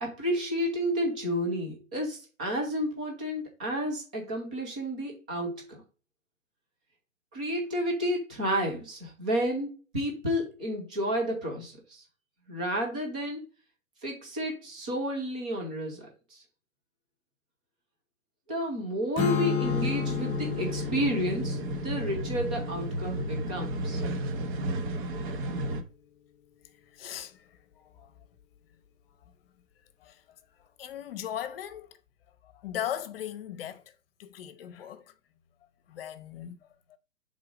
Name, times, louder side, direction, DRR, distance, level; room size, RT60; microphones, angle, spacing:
voice 1, 0.0-5.8 7.3-12.0 12.5-13.4 14.0-16.4 18.5-24.0, equal, 5° right, 0.3 m, -31 dB
Strum, 19.2-24.5, left 7 dB, 15° left, 0.9 m, -33 dB
sound 1, 19.6-25.8, right 1 dB, 40° right, 1.1 m, -33 dB
voice 2, 26.9-28.1 29.2-29.3 30.0-30.2 30.6-32.0 32.4-33.9 34.2-35.1 35.9-37.0, left 10 dB, 45° left, 0.9 m, -39 dB
6.8 x 3.9 x 4.9 m
hypercardioid pair, 130°, 39 cm